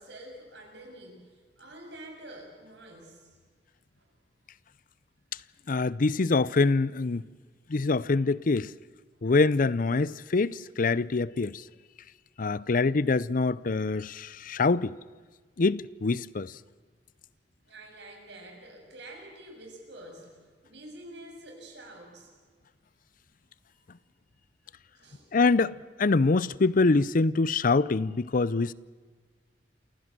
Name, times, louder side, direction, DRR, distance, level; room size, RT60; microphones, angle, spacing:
voice 1, 0.0-3.4 4.0-4.1 9.1-9.2 17.6-20.4 20.6-22.3 25.0-25.3, right 1 dB, 75° right, 7.0 m, -47 dB
voice 2, 5.7-7.2 7.7-8.7 9.2-11.6 12.4-14.9 15.6-16.5 25.3-28.7, left 3 dB, 50° left, 0.5 m, -25 dB
28.0 x 16.5 x 7.5 m
head